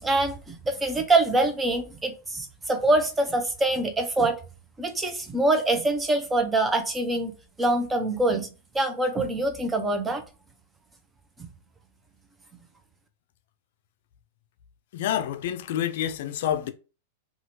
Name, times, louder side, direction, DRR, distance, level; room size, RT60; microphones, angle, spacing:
voice 1, 0.0-4.4 4.8-7.3 7.6-8.5 8.7-10.2, right 2 dB, 10° right, 0.5 m, -24 dB
voice 2, 14.9-16.7, left 10 dB, 65° left, 0.4 m, -28 dB
2.8 x 2.4 x 2.8 m
hypercardioid pair, 135°, 0 cm